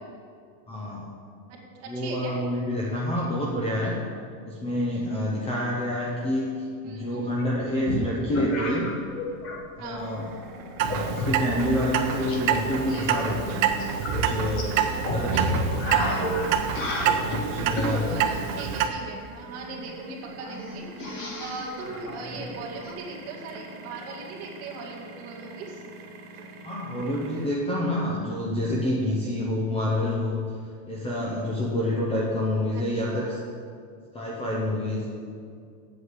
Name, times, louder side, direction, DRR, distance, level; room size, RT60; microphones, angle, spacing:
voice 1, 0.7-1.1 1.9-4.0 4.4-8.9 9.8-10.2 10.8-13.6 14.1-14.7 15.0-16.1 17.2-18.2 26.6-30.4 30.9-33.4 34.1-35.1, left 1 dB, 15° left, -4 dB, 0.7 m, -28 dB
voice 2, 1.5-2.4 6.8-7.4 9.8-10.1 14.9-15.0 15.8-16.5 17.8-20.9 21.4-25.8 32.7-33.4, right 3 dB, 35° right, -3 dB, 2.1 m, -39 dB
sound 1, 7.4-9.6 9.8-10.3 10.9-12.4 12.7-18.0 19.6-19.7 19.9-20.0 20.4-22.9, left 1 dB, 30° left, 1.4 m, -33 dB
sound 2, 10.0-27.5, right 2 dB, 75° right, 2.0 m, -45 dB
Clock, 10.8-18.9, right 7 dB, 60° right, 0.9 m, -27 dB
8.3 x 7.7 x 8.1 m, 2.3 s
supercardioid pair, 180°, 44 cm